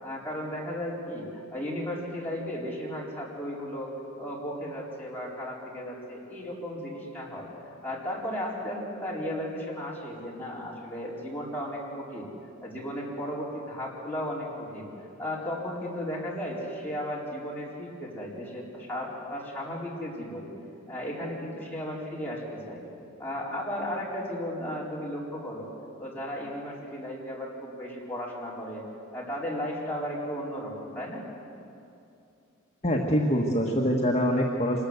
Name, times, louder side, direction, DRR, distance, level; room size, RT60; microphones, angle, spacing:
voice 1, 0.0-3.9 4.2-7.5 7.8-12.3 12.6-14.9 15.2-20.5 20.9-22.8 23.2-25.7 26.0-28.8 29.1-31.3, equal, 10° left, -5 dB, 4.6 m, -35 dB
voice 2, 32.8-34.9, equal, 30° left, -1 dB, 1.5 m, -24 dB
25.5 x 20.5 x 8.1 m, 2.6 s
head